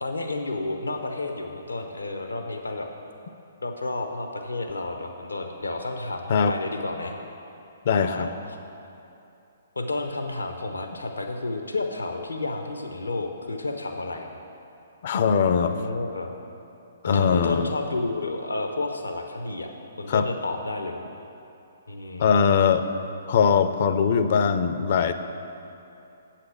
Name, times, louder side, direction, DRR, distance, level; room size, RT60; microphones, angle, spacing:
voice 1, 0.0-2.9 3.6-7.1 8.0-8.3 9.8-14.3 15.6-16.3 17.0-19.7 20.0-21.0 21.9-22.3, left 2 dB, 85° left, 4 dB, 0.8 m, -31 dB
voice 2, 7.9-8.3 15.0-15.8 17.0-17.7 20.1-20.3 22.2-22.8 23.3-25.1, left 6 dB, 50° left, 9 dB, 0.5 m, -21 dB
7.7 x 5.8 x 7.1 m, 2.7 s
figure-of-eight pair, 125°, 0 cm